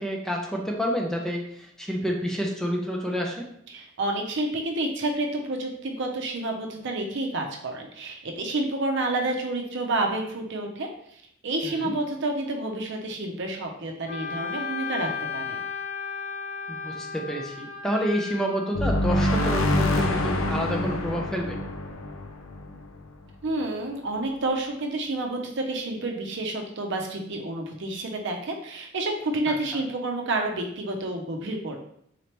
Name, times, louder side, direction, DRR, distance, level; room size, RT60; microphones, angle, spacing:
voice 1, 0.0-3.5 11.6-11.9 16.7-21.6, equal, ahead, 0 dB, 0.5 m, -29 dB
voice 2, 3.7-10.9 11.4-15.6 23.4-31.8, right 2 dB, 65° right, 2 dB, 0.6 m, -29 dB
Wind instrument woodwind instrument, 14.1-18.7, left 5 dB, 50° left, 0.7 m, -34 dB
sound 1, 18.7-23.3, left 1 dB, 90° left, 0.5 m, -26 dB
4.0 x 3.2 x 2.9 m, 0.70 s
head